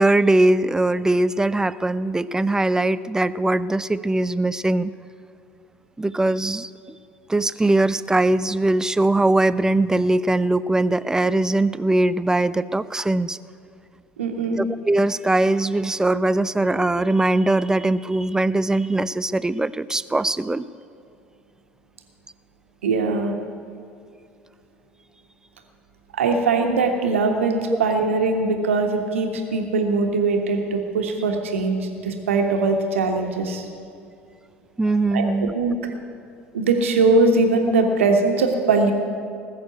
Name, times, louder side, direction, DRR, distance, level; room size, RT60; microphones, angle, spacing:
voice 1, 0.0-4.9 6.0-6.7 7.3-13.4 14.6-20.6 34.8-35.5, right 2 dB, 10° right, 17 dB, 0.4 m, -21 dB
voice 2, 14.2-14.6 22.8-23.3 26.1-33.6 35.1-35.8 36.5-38.9, right 3 dB, 70° right, 3 dB, 1.5 m, -21 dB
19.5 x 6.6 x 8.1 m, 2.4 s
figure-of-eight pair, 65°, 7 cm